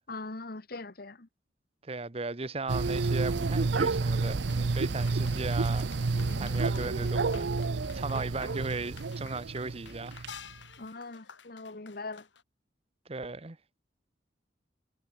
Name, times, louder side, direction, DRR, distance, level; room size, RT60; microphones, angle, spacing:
voice 1, 0.1-1.3 10.8-12.3, left 3 dB, 55° left, 1.3 m, -41 dB
voice 2, 1.8-7.5 7.9-10.2 13.1-13.6, right 3 dB, 35° right, 1.0 m, -37 dB
sound 1, 2.7-10.3, right 3 dB, 70° right, 0.6 m, -30 dB
sound 2, 4.4-12.4, left 5 dB, 85° left, 4.2 m, -51 dB
head